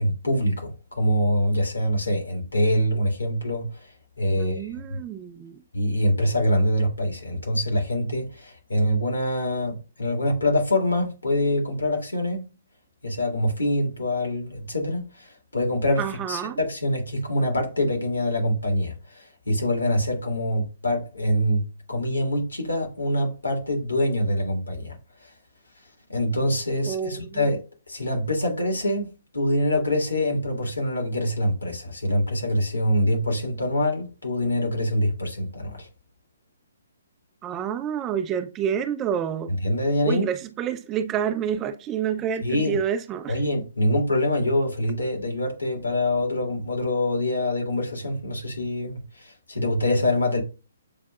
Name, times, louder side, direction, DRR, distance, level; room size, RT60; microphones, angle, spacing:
voice 1, 0.0-3.9 4.2-5.0 5.7-12.4 13.0-25.0 25.2-25.3 26.1-35.9 39.5-40.3 42.4-42.8 43.3-50.4, left 1 dB, 75° left, 1.7 m, -25 dB
voice 2, 4.3-5.6 16.0-16.6 26.9-27.5 37.4-39.5 40.0-43.4, right 8 dB, 20° right, 0.4 m, -28 dB
7.6 x 2.6 x 2.3 m
figure-of-eight pair, 130°, 0 cm